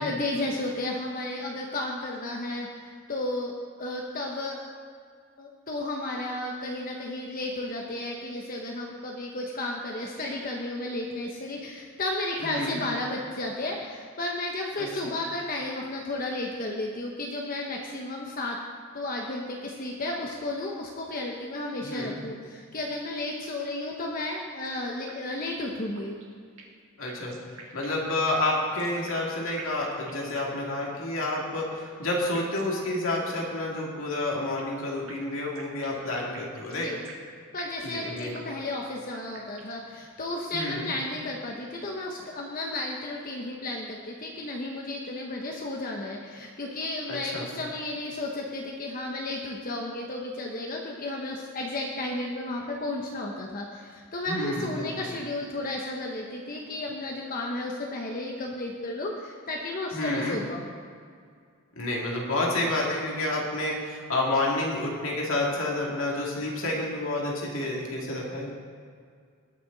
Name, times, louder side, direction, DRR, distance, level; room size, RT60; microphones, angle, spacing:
voice 1, 0.0-4.6 5.4-18.6 18.9-26.2 36.8-37.0 37.5-60.7, left 2 dB, 40° left, -1 dB, 0.9 m, -33 dB
voice 2, 12.4-12.8 14.8-15.1 21.8-22.2 27.0-27.4 27.7-36.9 37.8-38.4 40.5-40.9 47.1-47.5 54.3-55.1 59.9-60.4 61.8-68.5, left 2 dB, 70° left, -3 dB, 2.4 m, -29 dB
sound 1, 24.3-24.7 25.1-25.2 25.4-25.5 25.9-26.8 27.1-29.3 29.6-30.5 30.8-30.9 31.3-31.8 32.3-32.7 33.1-33.2 33.4-33.5 33.9-34.8 35.1-37.3 37.6-38.5 38.8-38.9 39.3-39.8, right 4 dB, 70° right, 1.8 m, -47 dB
19.5 x 6.7 x 4.0 m, 2.1 s
head